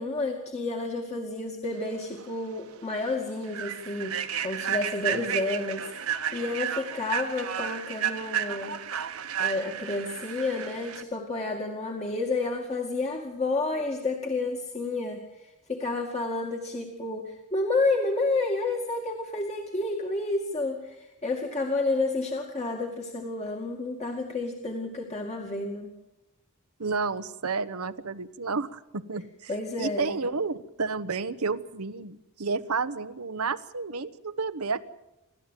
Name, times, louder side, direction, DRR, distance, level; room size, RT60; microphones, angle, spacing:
voice 1, 0.0-4.2 4.4-8.8 9.4-25.9 29.5-30.1, left 2 dB, 30° left, 1 dB, 2.3 m, -30 dB
Human voice / Train, 2.2-2.3 2.7-2.9 3.4-11.0, right 9 dB, 70° right, 1.4 m, -32 dB
voice 2, 26.8-29.2 29.8-34.8, right 4 dB, 90° right, 10 dB, 1.1 m, -31 dB
29.0 x 13.0 x 9.2 m, 0.95 s
head